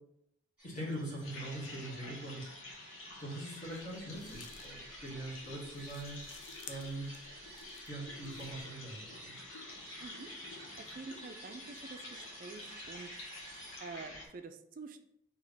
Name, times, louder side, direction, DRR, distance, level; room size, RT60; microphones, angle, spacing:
voice 1, 0.6-2.5 3.2-6.2 6.7-7.1 7.9-9.4, right 1 dB, 40° left, -6 dB, 1.5 m, -42 dB
sound 1, 0.6-13.8, right 2 dB, 5° right, 1.5 m, -54 dB
sound 2, 1.2-14.3, left 2 dB, 80° left, 0.9 m, -49 dB
sound 3, 3.6-8.6, left 5 dB, 65° left, 0.4 m, -55 dB
voice 2, 10.0-13.1 13.4-15.0, right 4 dB, 40° right, 8 dB, 0.3 m, -48 dB
3.4 x 2.9 x 3.9 m, 0.77 s
head